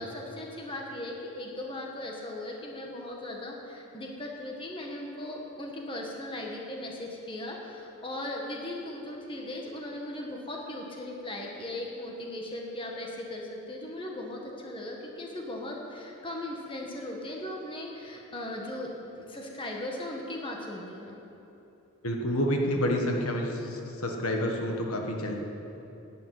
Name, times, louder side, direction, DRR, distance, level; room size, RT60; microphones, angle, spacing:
voice 1, 0.0-21.2, left 1 dB, 20° left, 0 dB, 1.5 m, -38 dB
voice 2, 22.0-25.3, equal, 75° left, 2 dB, 1.5 m, -29 dB
11.0 x 9.1 x 9.3 m, 3.0 s
head